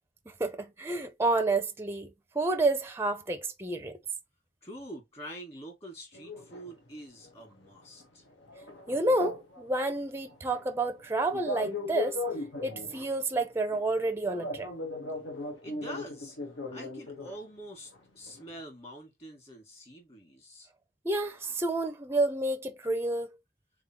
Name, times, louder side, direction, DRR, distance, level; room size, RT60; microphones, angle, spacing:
voice 1, 0.3-4.0 8.9-12.2 12.6-14.7 21.0-23.4, right 2 dB, 15° right, 0.5 m, -29 dB
voice 2, 4.6-8.2 15.6-16.4 16.7-20.7, equal, 35° left, 1.9 m, -45 dB
sound 1, 6.1-7.7 8.0-9.7 10.0-17.4 17.9-18.0 18.3-18.5, left 2 dB, 85° left, 1.4 m, -38 dB
3.9 x 3.6 x 2.9 m
head